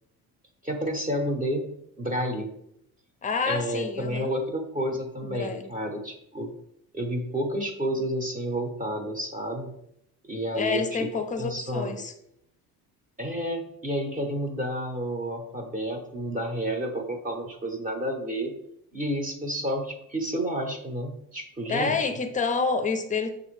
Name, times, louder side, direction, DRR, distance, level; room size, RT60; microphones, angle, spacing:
voice 1, 0.6-1.7 2.0-2.5 3.5-6.5 6.9-9.7 10.2-11.1 11.4-12.0 13.2-18.5 18.9-22.1, equal, 25° right, 2 dB, 0.8 m, -30 dB
voice 2, 3.2-4.3 5.2-5.7 10.5-12.1 21.7-23.3, left 4 dB, 20° left, 7 dB, 0.5 m, -28 dB
6.2 x 2.5 x 3.2 m, 0.76 s
cardioid pair, 110°, 36 cm